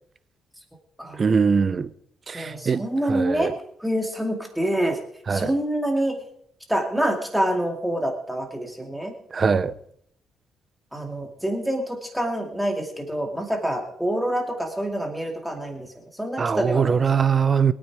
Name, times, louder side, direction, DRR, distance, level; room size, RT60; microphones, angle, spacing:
voice 1, 1.2-1.9 2.3-3.5 5.3-5.5 9.3-9.7 16.4-17.7, right 6 dB, 40° right, 0.8 m, -22 dB
voice 2, 2.3-3.5 3.8-5.0 5.3-6.2 6.7-9.1 10.9-17.2, right 1 dB, 5° right, 2.3 m, -26 dB
23.0 x 8.8 x 4.9 m
cardioid pair, 90°, 0 cm